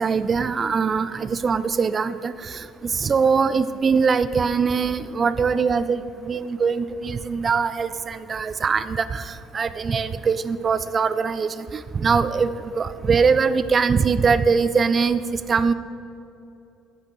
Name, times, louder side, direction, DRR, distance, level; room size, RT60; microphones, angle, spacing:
voice 1, 0.0-15.7, right 5 dB, 30° right, 13 dB, 0.3 m, -22 dB
8.2 x 5.1 x 4.5 m, 2.7 s
figure-of-eight pair, 55°, 0 cm